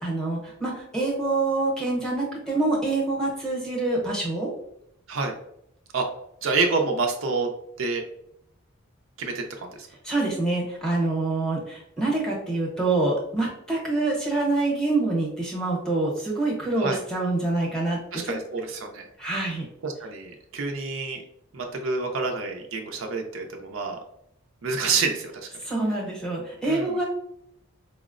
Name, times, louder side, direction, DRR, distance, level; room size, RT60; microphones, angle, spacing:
voice 1, 0.0-4.5 10.0-18.3 19.2-19.7 25.6-27.1, right 2 dB, 5° left, -3 dB, 0.8 m, -26 dB
voice 2, 6.4-7.5 7.8-8.0 9.2-9.9 16.8-17.0 18.1-19.1 19.8-21.2 21.5-24.0 24.6-25.5 26.6-26.9, right 4 dB, 65° right, 3 dB, 0.5 m, -28 dB
4.2 x 2.0 x 2.4 m, 0.73 s
head